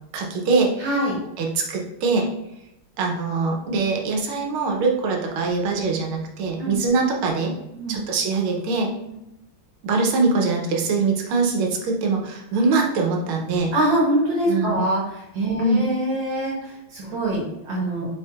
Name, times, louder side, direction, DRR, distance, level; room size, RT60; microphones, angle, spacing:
voice 1, 0.1-0.8 1.4-2.3 3.0-7.5 7.9-8.9 9.8-13.7 14.5-14.8 15.6-15.8, right 3 dB, 85° right, 1 dB, 1.6 m, -23 dB
voice 2, 0.8-1.2 6.6-6.8 7.7-8.0 9.1-9.2 13.7-18.1, right 1 dB, 70° right, -4 dB, 1.7 m, -24 dB
4.6 x 4.4 x 2.4 m, 0.88 s
omnidirectional pair, 2.2 m